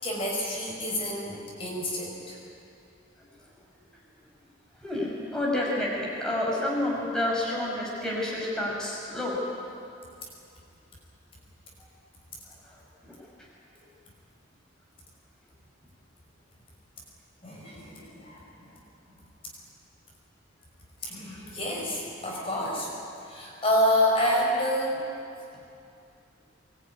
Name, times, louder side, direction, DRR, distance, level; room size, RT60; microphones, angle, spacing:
voice 1, 0.0-2.4 17.4-18.7 21.0-22.9 23.2-25.0, left 1 dB, 30° left, -3 dB, 5.8 m, -28 dB
voice 2, 3.2-3.5 4.7-9.4 12.6-13.2, left 1 dB, 5° left, -5 dB, 5.9 m, -30 dB
23.5 x 21.5 x 9.8 m, 2.5 s
head